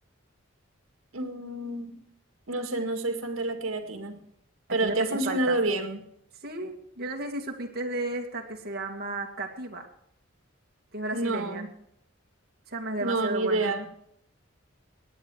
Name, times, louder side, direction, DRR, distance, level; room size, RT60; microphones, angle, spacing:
voice 1, 1.1-2.0 2.5-4.2 4.7-6.0 11.1-11.7 13.0-13.9, right 2 dB, 80° right, 6 dB, 2.0 m, -28 dB
voice 2, 4.8-5.6 6.4-9.9 10.9-11.6 12.7-13.7, right 2 dB, 50° right, 1 dB, 2.4 m, -34 dB
18.0 x 9.9 x 4.8 m, 0.72 s
head